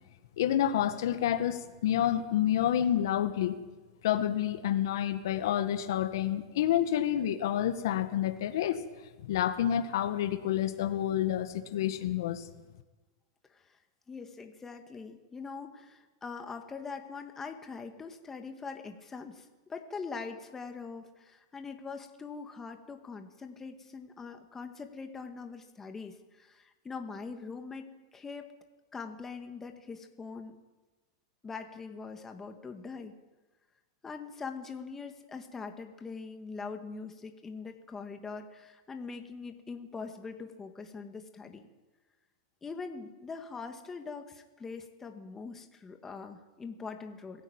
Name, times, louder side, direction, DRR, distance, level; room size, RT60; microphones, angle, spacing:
voice 1, 0.4-3.6 4.0-8.8 9.2-12.5, left 11 dB, 75° left, 9 dB, 1.8 m, -29 dB
voice 2, 14.1-28.5 28.9-30.6 31.4-33.1 34.0-41.6 42.6-47.4, left 4 dB, 15° left, 5 dB, 2.1 m, -42 dB
21.5 x 15.5 x 9.0 m, 1.2 s
hypercardioid pair, 125°, 2 cm